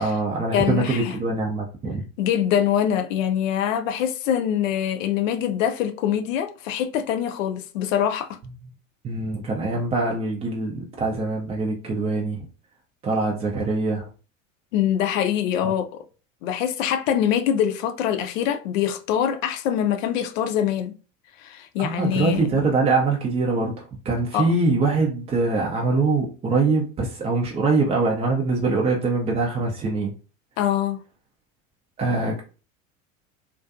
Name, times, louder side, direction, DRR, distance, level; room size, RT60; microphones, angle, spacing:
voice 1, 0.0-2.0 9.0-12.4 13.0-14.1 15.6-15.7 21.8-30.1 32.0-32.4, right 3 dB, 15° right, 0.3 m, -23 dB
voice 2, 0.5-1.1 2.2-8.4 14.7-16.0 16.4-20.9 21.4-22.5 24.3-24.5 30.6-31.0, left 10 dB, 70° left, 0.5 m, -24 dB
2.5 x 2.3 x 2.4 m
hypercardioid pair, 85°, 40 cm